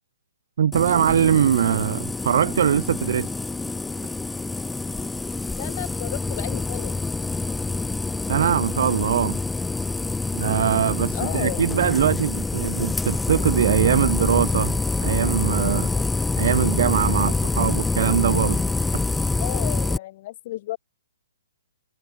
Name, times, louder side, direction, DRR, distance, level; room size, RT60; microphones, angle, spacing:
voice 1, 0.6-3.3 8.3-9.4 10.3-15.9 16.4-18.6, right 9 dB, 60° right, 1.6 m, -22 dB
sound 1, 0.7-20.0, left 3 dB, 5° left, 0.9 m, -26 dB
voice 2, 5.6-6.9 11.1-11.6 15.9-16.0 19.4-20.8, left 16 dB, 40° left, 5.1 m, -33 dB
hypercardioid pair, 150°, 0 cm